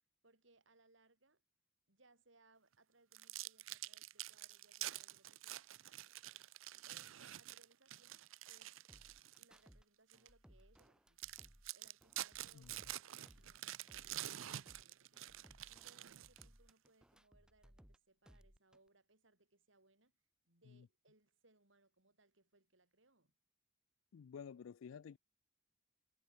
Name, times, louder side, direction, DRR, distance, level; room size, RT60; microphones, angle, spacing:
voice 1, 0.2-1.4 1.9-6.0 6.8-8.8 9.4-11.2 11.7-15.3 15.7-20.1 20.4-23.3, right 2 dB, 70° right, 4.8 m, -72 dB
sound 1, 3.1-9.6 10.1-10.3 10.8-10.9 11.2-16.7, right 13 dB, 85° right, 0.6 m, -48 dB
sound 2, 8.9-9.8 10.1-13.0 13.3-14.8 15.1-18.0 18.3-18.9, equal, 5° right, 0.7 m, -65 dB
voice 2, 24.1-25.2, left 7 dB, 80° left, 0.4 m, -52 dB
head